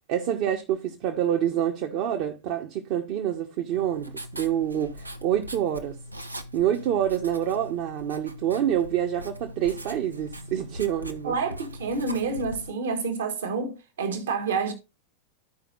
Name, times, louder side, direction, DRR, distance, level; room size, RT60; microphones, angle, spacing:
voice 1, 0.1-6.0 6.5-11.3, right 10 dB, 45° right, 1.0 m, -27 dB
Writing, 3.7-12.7, equal, 85° right, 0.6 m, -41 dB
voice 2, 11.2-14.7, right 4 dB, 65° right, 1.5 m, -28 dB
14.0 x 5.0 x 2.4 m
figure-of-eight pair, 90°, 0 cm